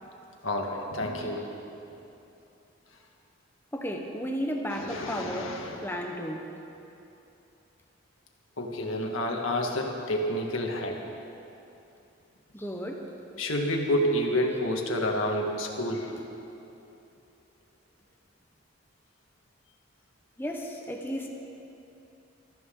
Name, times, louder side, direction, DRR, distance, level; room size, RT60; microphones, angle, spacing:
voice 1, 0.4-1.4 4.7-5.8 8.6-11.0 13.4-16.2, left 1 dB, 85° left, 1 dB, 1.8 m, -29 dB
voice 2, 3.7-6.5 12.5-13.1 20.4-21.3, equal, 10° left, 2 dB, 1.0 m, -34 dB
21.5 x 14.0 x 3.8 m, 2.8 s
head